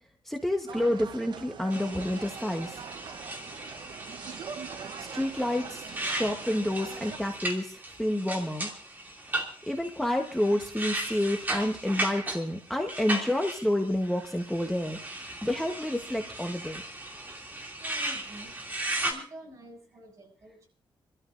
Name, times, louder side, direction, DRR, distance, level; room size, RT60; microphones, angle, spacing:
voice 1, 0.2-2.8 5.0-8.7 9.7-16.8, left 1 dB, 5° left, 2 dB, 1.1 m, -29 dB
sound 1, 0.7-7.2, right 7 dB, 65° right, 0.8 m, -43 dB
sound 2, 1.7-19.1, right 1 dB, 20° right, 2.6 m, -37 dB
voice 2, 17.7-18.6 18.9-20.7, equal, 40° right, 0 dB, 7.0 m, -48 dB
28.0 x 13.0 x 2.6 m, 0.41 s
wide cardioid pair, 155°, 9 cm